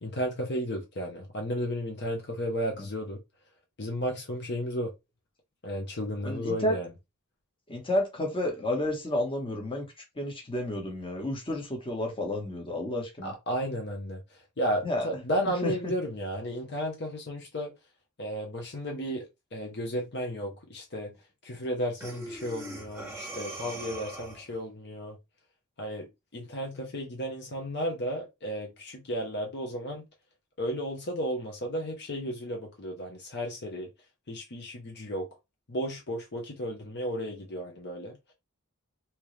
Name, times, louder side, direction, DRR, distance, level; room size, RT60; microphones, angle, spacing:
voice 1, 0.0-3.2 3.8-4.9 5.6-6.9 13.2-14.2 14.6-17.7 18.2-21.1 21.4-25.2 25.8-26.1 26.3-30.0 30.6-33.9 34.3-35.3 35.7-38.2, equal, 50° left, 0.8 m, -33 dB
voice 2, 6.2-6.8 7.7-9.8 10.2-13.3 14.8-15.2 15.6-15.9, left 1 dB, 25° left, 1.2 m, -31 dB
Breathing, 22.0-24.6, right 1 dB, 10° right, 1.5 m, -41 dB
3.5 x 2.9 x 3.2 m
head